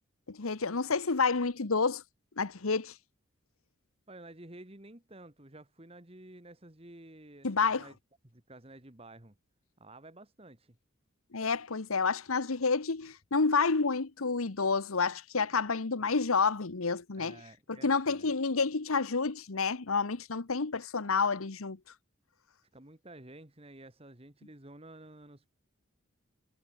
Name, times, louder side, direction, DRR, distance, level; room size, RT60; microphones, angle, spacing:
voice 1, 0.3-2.0 2.4-2.9 7.4-7.8 11.3-17.4 17.8-21.8, left 4 dB, 85° left, 1.1 m, -29 dB
voice 2, 4.1-8.0 8.2-9.4 9.8-10.8 17.2-18.3 22.7-25.5, right 1 dB, 25° right, 1.7 m, -52 dB
head